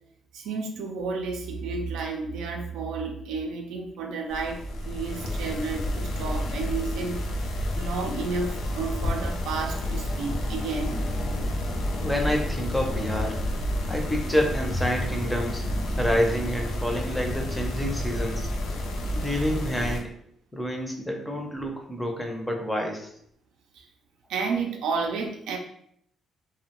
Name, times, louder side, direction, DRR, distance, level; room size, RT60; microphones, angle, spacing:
voice 1, 0.3-7.2 7.7-11.0 17.5-17.6 19.2-19.3 23.8-23.9 24.3-25.6, right 4 dB, 90° right, 2 dB, 0.4 m, -31 dB
sound 1, 4.3-20.0, left 1 dB, 80° left, 0.4 m, -30 dB
voice 2, 11.9-13.3 13.9-15.6 16.0-18.5 19.1-20.1 20.5-23.1, equal, 10° left, 2 dB, 0.5 m, -28 dB
2.5 x 2.1 x 2.9 m, 0.69 s
cardioid pair, 90°, 0 cm